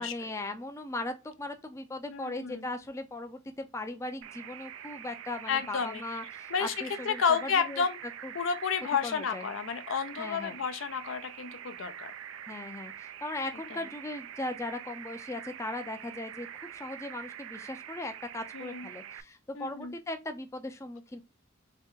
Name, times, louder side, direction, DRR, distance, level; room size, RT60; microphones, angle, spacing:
voice 1, 0.0-7.2 7.6-7.8 8.2-8.3 9.0-9.5 10.2-10.5 12.5-21.2, left 2 dB, 15° left, 0.4 m, -38 dB
voice 2, 2.1-2.7 5.5-6.0 6.5-8.0 8.3-12.1 18.5-18.9 19.5-19.9, left 6 dB, 75° left, 0.5 m, -31 dB
sound 1, 4.2-19.2, right 10 dB, 85° right, 0.3 m, -45 dB
3.2 x 2.8 x 3.6 m
head